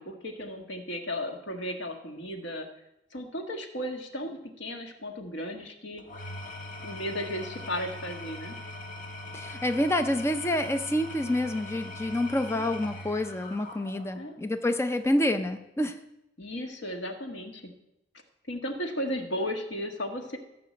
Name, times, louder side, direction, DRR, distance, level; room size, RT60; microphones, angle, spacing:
voice 1, 0.0-2.7 3.1-6.0 6.8-8.6 12.5-12.6 14.1-14.4 16.4-17.6 18.5-20.4, equal, 90° left, 4 dB, 1.6 m, -35 dB
Engine / Tools, 6.0-14.3, left 2 dB, 50° left, 1.4 m, -41 dB
voice 2, 9.3-16.0, left 1 dB, 15° left, 8 dB, 0.5 m, -28 dB
14.5 x 6.0 x 7.6 m, 0.88 s
head